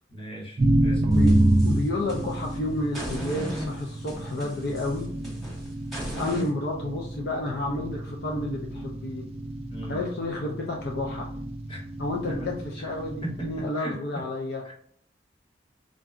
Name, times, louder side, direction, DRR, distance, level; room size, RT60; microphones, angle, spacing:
voice 1, 0.1-1.2 9.7-10.0 11.7-11.9 12.3-12.5 12.8-12.9 13.2-14.2 14.6-14.7, right 1 dB, 30° left, -3 dB, 1.0 m, -37 dB
sound 1, 0.6-13.6, right 1 dB, 35° right, 0.4 m, -28 dB
sound 2, 1.1-2.5 2.9-6.5, equal, ahead, 1.1 m, -38 dB
voice 2, 1.6-5.1 6.2-9.2 9.9-11.3 12.0-14.6, left 2 dB, 65° left, 0 dB, 0.5 m, -30 dB
3.7 x 2.2 x 2.4 m, 0.62 s
head